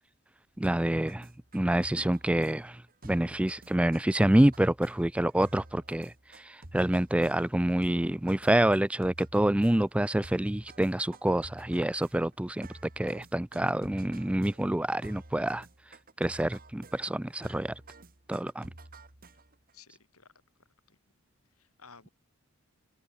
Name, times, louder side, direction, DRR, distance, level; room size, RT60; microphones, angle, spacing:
voice 1, 0.6-1.3 1.5-12.7 13.0-15.7 16.2-17.7 18.3-18.7, right 1 dB, 5° right, 0.3 m, -27 dB
sound 1, 0.6-19.7, right 2 dB, 40° right, 2.6 m, -51 dB
voice 2, 19.7-20.3 20.9-21.0 21.6-22.1, left 5 dB, 75° left, 6.8 m, -55 dB
head